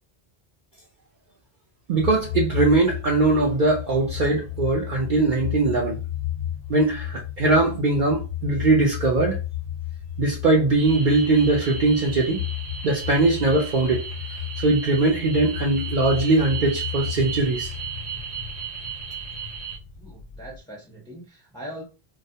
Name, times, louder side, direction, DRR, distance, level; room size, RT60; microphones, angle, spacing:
voice 1, 1.9-6.0 6.7-9.4 10.2-12.4 12.8-14.0 14.6-17.7, right 2 dB, 60° right, 0.6 m, -21 dB
sound 1, 2.0-20.6, left 12 dB, 65° left, 0.7 m, -33 dB
sound 2, 10.8-19.8, right 7 dB, 80° right, 1.0 m, -36 dB
voice 2, 20.0-21.8, equal, 5° left, 0.5 m, -41 dB
2.3 x 2.1 x 2.6 m
omnidirectional pair, 1.1 m